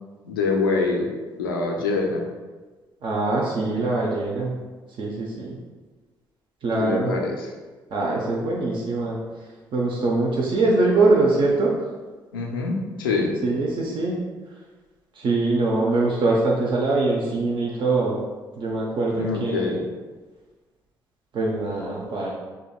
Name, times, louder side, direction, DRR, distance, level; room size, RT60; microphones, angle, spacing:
voice 1, 0.2-1.1 1.4-2.3 6.7-7.5 12.3-13.3 19.1-19.8, left 3 dB, 80° left, 0 dB, 0.5 m, -25 dB
voice 2, 3.0-4.5 5.0-5.6 6.6-7.2 7.9-9.2 9.7-11.7 13.4-14.1 15.2-18.2 18.6-19.8 21.3-22.3, right 2 dB, 45° right, -3 dB, 0.6 m, -23 dB
4.9 x 2.8 x 2.3 m, 1.3 s
figure-of-eight pair, 45°, 11 cm